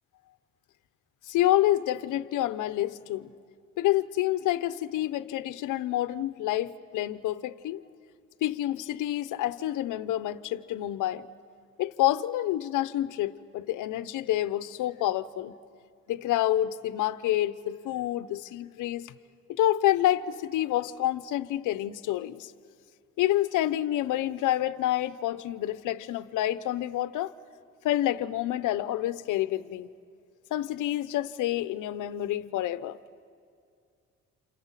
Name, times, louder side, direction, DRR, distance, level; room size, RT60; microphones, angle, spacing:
voice 1, 1.3-3.3 3.8-7.8 8.4-11.3 11.8-15.5 16.1-19.1 19.5-22.5 23.2-27.3 27.8-29.9 30.5-33.0, left 13 dB, 90° left, 0.9 m, -28 dB
28.5 x 28.0 x 7.4 m
cardioid pair, 90°, 30 cm